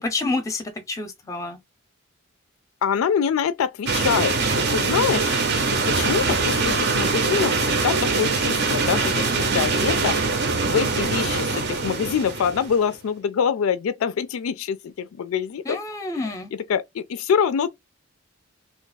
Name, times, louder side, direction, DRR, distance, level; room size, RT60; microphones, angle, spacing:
voice 1, 0.0-1.6 15.7-16.5, left 3 dB, 15° left, 0.6 m, -28 dB
voice 2, 2.8-5.6 5.9-15.8 16.5-17.7, left 7 dB, 75° left, 0.3 m, -25 dB
sound 1, 3.9-12.8, right 3 dB, 50° right, 0.6 m, -23 dB
2.9 x 2.3 x 3.9 m
head